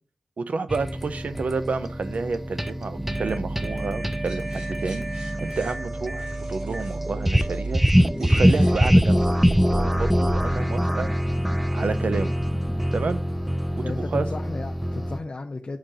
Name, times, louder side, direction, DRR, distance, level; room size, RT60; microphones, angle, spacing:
voice 1, 0.4-5.1 5.4-7.8 8.2-9.3 9.6-11.1 11.7-12.4 12.9-13.2 13.7-14.3, right 4 dB, 80° right, 0.5 m, -30 dB
sound 1, 0.7-15.2, equal, 5° right, 0.4 m, -24 dB
sound 2, 4.2-10.4, equal, 45° right, 3.3 m, -50 dB
voice 2, 13.8-15.8, left 3 dB, 50° left, 0.5 m, -34 dB
10.0 x 3.7 x 2.7 m
wide cardioid pair, 75°, 2 cm